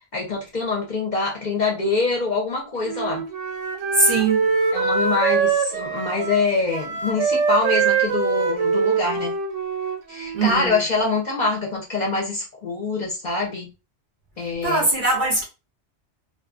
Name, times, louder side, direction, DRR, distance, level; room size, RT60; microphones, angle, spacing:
voice 1, 0.1-3.2 4.7-9.3 10.1-13.7 14.4-14.9, left 3 dB, 50° left, 0.6 m, -24 dB
Wind instrument woodwind instrument, 2.8-10.6, right 5 dB, 90° right, 0.9 m, -23 dB
voice 2, 3.9-4.4 10.3-10.8 14.6-15.4, right 2 dB, 55° right, 0.6 m, -20 dB
2.5 x 2.2 x 2.4 m
omnidirectional pair, 1.2 m